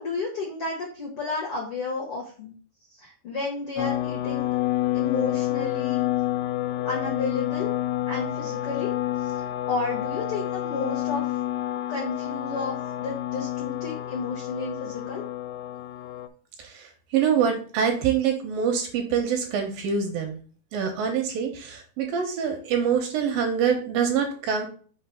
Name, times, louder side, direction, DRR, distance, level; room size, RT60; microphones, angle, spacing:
voice 1, 0.0-2.5 2.9-4.4 4.9-6.1 6.8-7.7 8.1-11.4 11.9-15.2, left 3 dB, 65° left, -2 dB, 1.4 m, -32 dB
sound 1, 3.8-16.3, left 14 dB, 90° left, 2.7 m, -29 dB
voice 2, 16.6-20.4 20.7-24.7, right 7 dB, 75° right, 3 dB, 2.4 m, -25 dB
5.9 x 3.3 x 5.4 m, 0.42 s
omnidirectional pair, 4.5 m